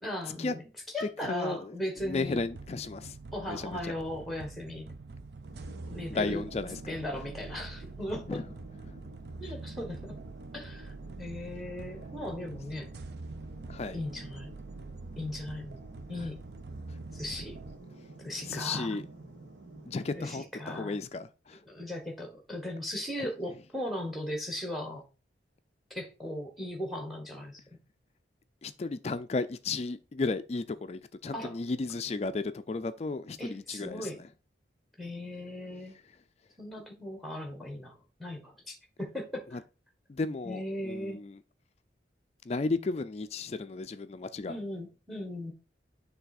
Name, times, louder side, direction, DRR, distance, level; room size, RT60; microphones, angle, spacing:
voice 1, 0.0-0.6 0.9-2.4 3.3-4.9 5.9-6.4 6.9-8.4 9.4-10.2 10.5-10.9 11.2-12.9 13.9-14.5 15.2-15.8 16.1-16.4 17.1-17.6 18.2-18.9 20.2-21.0 21.7-25.0 25.9-27.6 31.3-31.6 33.4-34.2 35.0-35.9 36.6-39.6 40.4-41.2 44.5-45.5, left 1 dB, ahead, 1.3 m, -37 dB
voice 2, 1.2-1.7 2.0-3.2 3.5-3.9 6.1-6.8 8.3-8.5 8.8-9.0 9.4-9.5 13.7-14.0 18.5-19.0 19.9-21.6 23.2-23.3 28.6-34.3 39.5-39.6 40.1-41.4 42.5-44.6, left 3 dB, 35° left, 0.3 m, -34 dB
sound 1, 2.0-17.8, right 3 dB, 60° right, 0.5 m, -45 dB
sound 2, 5.4-20.4, right 2 dB, 75° right, 1.5 m, -50 dB
7.0 x 3.4 x 4.1 m
head